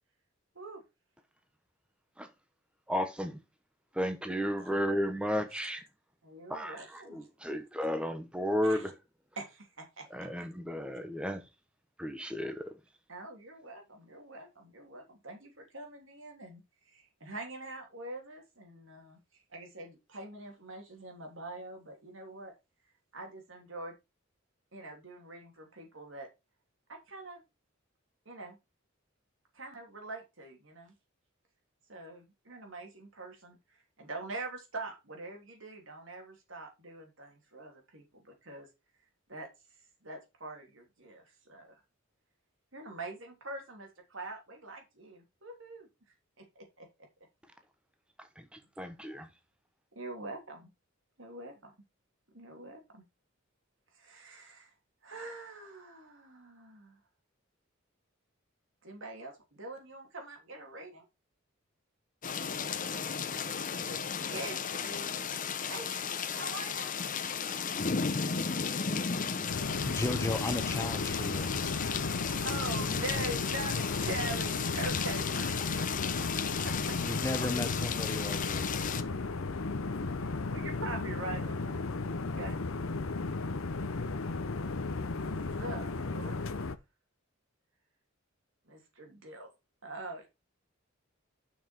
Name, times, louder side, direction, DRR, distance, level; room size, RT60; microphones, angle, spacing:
voice 1, 2.9-3.4 3.9-5.8 6.5-8.9 10.1-11.4 12.0-12.8 48.2-49.3, equal, 5° right, 1.0 m, -33 dB
voice 2, 6.2-7.5 8.6-8.8 9.4-10.1 10.4-10.5 13.1-22.5 23.1-23.9 24.7-26.3 26.9-27.4 28.2-28.6 29.5-30.9 31.9-38.7 39.3-39.5 40.0-41.8 42.7-45.9 46.4-46.9 49.9-50.7 51.2-51.7 52.3-53.0 53.9-54.7 55.0-57.0 58.8-61.0 62.6-64.0 64.3-65.1 65.7-66.9 72.4-76.0 76.6-77.1 80.2-81.8 82.1-82.6 85.6-86.6 88.7-89.5 89.8-90.3, right 2 dB, 70° right, 3.1 m, -44 dB
sound 1, 62.2-79.0, left 6 dB, 40° left, 0.8 m, -34 dB
sound 2, 69.5-86.8, left 3 dB, 85° left, 0.8 m, -35 dB
voice 3, 69.8-71.5 77.0-78.7, left 2 dB, 15° left, 0.5 m, -35 dB
7.2 x 6.1 x 4.4 m
head